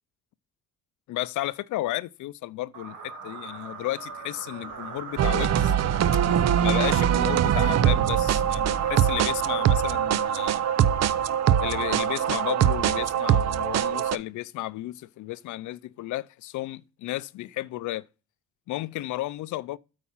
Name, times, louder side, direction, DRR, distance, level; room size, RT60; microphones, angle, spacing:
voice 1, 1.1-5.8 6.6-10.7 11.6-18.0 18.7-19.8, left 16 dB, 80° left, 0.5 m, -33 dB
sound 1, 2.7-13.5, right 4 dB, 80° right, 1.6 m, -40 dB
sound 2, 5.2-14.2, right 9 dB, 60° right, 0.6 m, -23 dB
8.7 x 4.1 x 5.7 m
cardioid pair, 90°, 30 cm